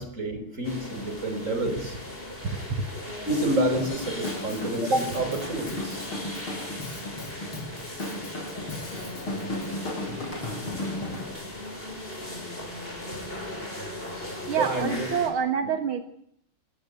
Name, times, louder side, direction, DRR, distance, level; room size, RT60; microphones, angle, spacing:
voice 1, 0.0-2.0 3.2-6.1 14.6-15.1, right 1 dB, 35° right, 8 dB, 5.6 m, -28 dB
sound 1, 0.6-15.3, left 1 dB, 25° left, 6.3 m, -38 dB
voice 2, 2.5-2.9 14.5-16.0, right 7 dB, 75° right, 7 dB, 2.3 m, -27 dB
Drum kit / Drum, 3.8-11.3, left 1 dB, 75° left, 6.3 m, -35 dB
28.5 x 16.0 x 9.5 m, 0.73 s
omnidirectional pair, 2.4 m